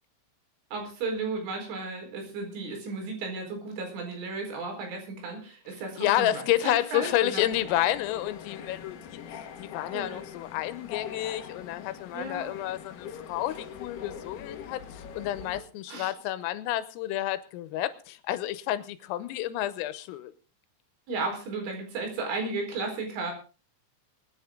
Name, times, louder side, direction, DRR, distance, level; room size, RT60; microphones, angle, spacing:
voice 1, 0.7-7.5 9.9-10.3 12.1-12.5 15.9-16.1 21.1-23.3, right 3 dB, 70° right, 3 dB, 6.9 m, -34 dB
voice 2, 6.0-9.2 9.6-20.3, left 14 dB, 90° left, 13 dB, 3.6 m, -30 dB
sound 1, 7.5-15.6, left 8 dB, 65° left, 3.1 m, -42 dB
24.5 x 9.6 x 3.8 m, 0.35 s
omnidirectional pair, 5.9 m